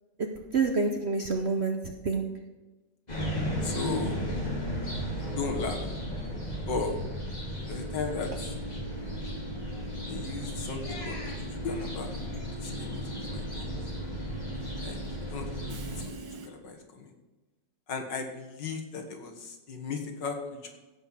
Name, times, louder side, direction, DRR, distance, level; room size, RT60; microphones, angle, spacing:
voice 1, 0.2-2.2 10.4-10.5, right 4 dB, 50° right, 4 dB, 0.8 m, -28 dB
sound 1, 3.1-16.0, equal, 20° left, 2.8 m, -35 dB
voice 2, 3.6-4.2 5.3-5.8 6.7-6.9 7.7-8.3 10.1-12.1 12.6-13.7 14.8-15.0 15.3-16.2 16.4-17.1 17.9-20.4 20.6-20.7, left 4 dB, 70° left, 3 dB, 2.2 m, -36 dB
Train / Subway metro underground, 7.7-16.5, right 2 dB, 80° right, 1.8 m, -43 dB
15.5 x 5.6 x 6.4 m, 1.2 s
omnidirectional pair, 2.0 m